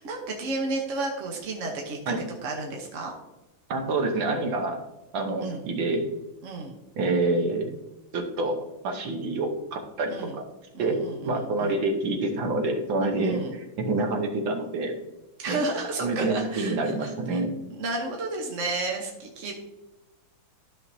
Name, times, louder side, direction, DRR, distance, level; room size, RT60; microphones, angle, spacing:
voice 1, 0.0-2.1 2.4-3.1 5.4-5.6 6.4-6.8 10.1-10.4 10.7-11.8 13.2-13.5 15.4-17.4 17.7-19.5, right 2 dB, 45° right, 0 dB, 1.1 m, -32 dB
voice 2, 3.7-4.8 5.1-6.1 7.0-7.7 8.1-10.2 10.8-11.0 11.2-14.9 15.5-15.6 16.0-17.5, right 2 dB, 70° right, 4 dB, 1.7 m, -27 dB
12.5 x 5.9 x 2.7 m, 1.0 s
omnidirectional pair, 2.3 m